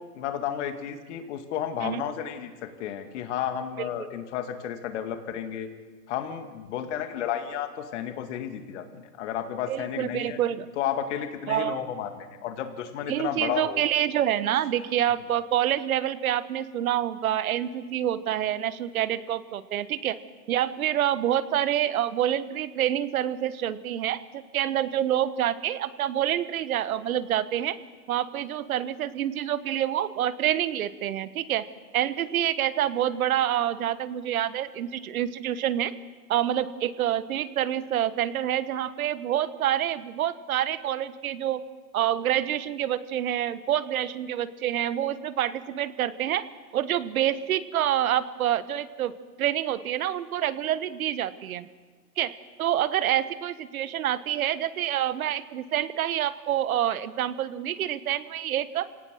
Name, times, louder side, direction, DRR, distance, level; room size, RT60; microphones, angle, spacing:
voice 1, 0.1-5.7 6.1-10.4 10.8-13.8, left 9 dB, 45° left, 7 dB, 2.4 m, -32 dB
voice 2, 9.7-10.7 11.5-11.8 13.1-20.2 20.5-27.8 28.1-31.7 31.9-35.9 36.3-41.6 41.9-46.5 46.7-49.1 49.4-51.7 52.2-58.9, right 11 dB, 60° right, 15 dB, 1.3 m, -27 dB
26.5 x 18.0 x 6.4 m, 1.4 s
hypercardioid pair, 150°, 48 cm